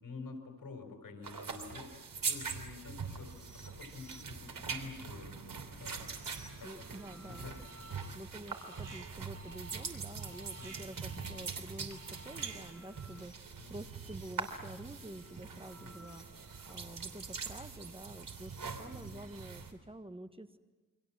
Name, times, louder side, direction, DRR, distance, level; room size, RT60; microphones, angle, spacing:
voice 1, 0.0-6.1 6.6-8.0 10.6-10.7 13.6-13.7 15.8-16.0 18.6-19.2, left 4 dB, 90° left, 5 dB, 4.7 m, -49 dB
sound 1, 1.2-19.7, right 5 dB, 90° right, 3.2 m, -43 dB
sound 2, 2.9-19.5, right 1 dB, 50° right, 5.2 m, -62 dB
voice 2, 6.6-7.5 8.1-16.2 16.7-20.6, right 1 dB, 15° right, 8 dB, 1.4 m, -48 dB
Alarm, 7.6-8.2 8.5-12.9, right 3 dB, 70° right, 4.0 m, -53 dB
29.0 x 24.5 x 7.4 m, 1.2 s
wide cardioid pair, 115°, 33 cm